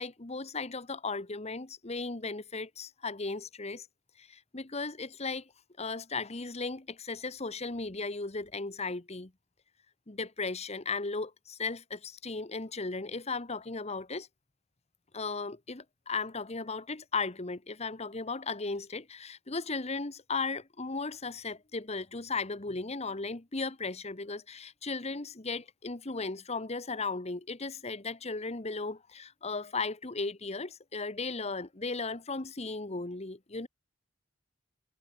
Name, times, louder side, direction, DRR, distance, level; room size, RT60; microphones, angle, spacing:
voice 1, 0.0-3.9 4.2-5.5 5.8-9.3 10.1-14.3 15.1-33.7, left 3 dB, 30° left, 1.3 m, -36 dB
head